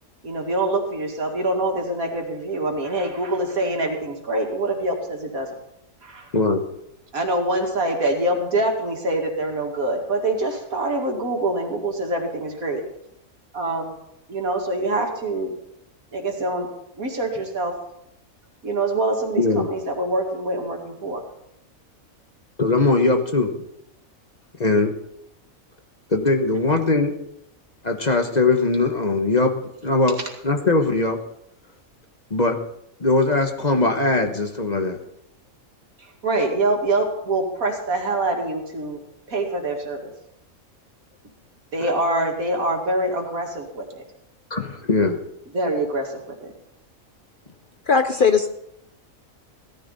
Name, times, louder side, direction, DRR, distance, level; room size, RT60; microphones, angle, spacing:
voice 1, 0.2-5.5 6.0-6.3 7.1-12.8 13.5-14.0 14.3-15.5 16.1-16.7 17.0-17.7 18.6-21.2 36.0-39.0 39.3-40.1 41.7-44.0 45.5-46.5, right 2 dB, 85° right, 1 dB, 2.8 m, -25 dB
voice 2, 19.4-19.7 22.6-23.5 24.6-24.9 26.1-27.1 27.8-30.2 30.4-31.2 32.3-32.6 33.0-35.0 44.5-45.2, left 3 dB, 30° left, 4 dB, 1.3 m, -20 dB
voice 3, 47.9-48.5, left 5 dB, 50° left, 8 dB, 0.7 m, -18 dB
17.0 x 14.0 x 4.1 m, 0.77 s
omnidirectional pair, 1.4 m